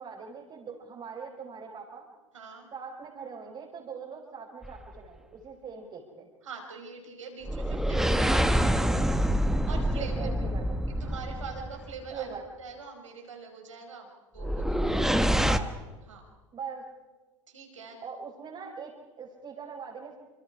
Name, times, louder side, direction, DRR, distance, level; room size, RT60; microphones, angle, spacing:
voice 1, 0.0-2.1 2.7-6.3 10.0-10.8 12.1-12.4 15.4-15.7 16.5-16.8 18.0-20.2, right 6 dB, 35° right, -1 dB, 4.7 m, -41 dB
voice 2, 2.3-2.7 6.4-9.1 9.6-10.5 10.9-14.1 14.3-15.5 16.1-16.3 17.5-18.0, right 4 dB, 75° right, 2 dB, 5.7 m, -43 dB
sound 1, 4.6-5.0 7.4-12.0 14.4-15.6, equal, 5° right, 1.4 m, -26 dB
28.0 x 27.0 x 5.0 m, 1.2 s
figure-of-eight pair, 75°, 16 cm